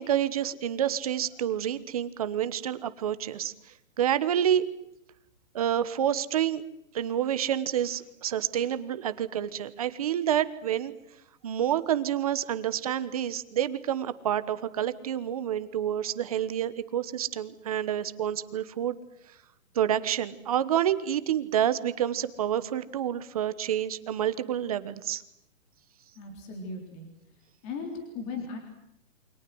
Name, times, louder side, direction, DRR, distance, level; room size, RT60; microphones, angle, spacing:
voice 1, 0.0-3.5 4.0-4.6 5.5-6.6 6.9-10.9 11.4-19.0 19.7-25.2, right 10 dB, 25° right, 13 dB, 1.2 m, -28 dB
voice 2, 26.2-27.1 27.6-28.6, left 4 dB, 15° left, 3 dB, 3.8 m, -37 dB
28.5 x 25.5 x 7.8 m, 0.81 s
hypercardioid pair, 175°, 40 cm